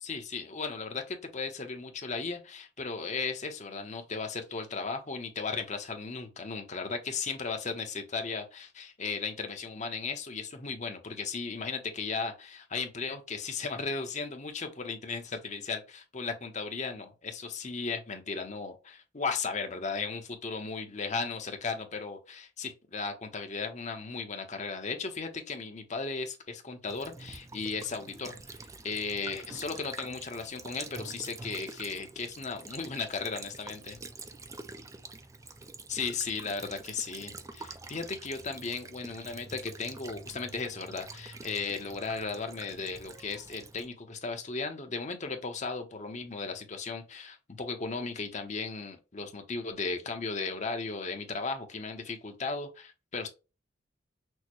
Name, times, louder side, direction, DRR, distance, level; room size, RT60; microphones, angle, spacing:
voice 1, 0.0-28.4 28.8-34.0 35.9-53.3, left 4 dB, 35° left, 0.8 m, -36 dB
Child speech kid speaking / Bird vocalization bird call bird song / Stream, 26.9-43.9, right 3 dB, 15° right, 0.4 m, -46 dB
6.3 x 2.1 x 3.0 m
head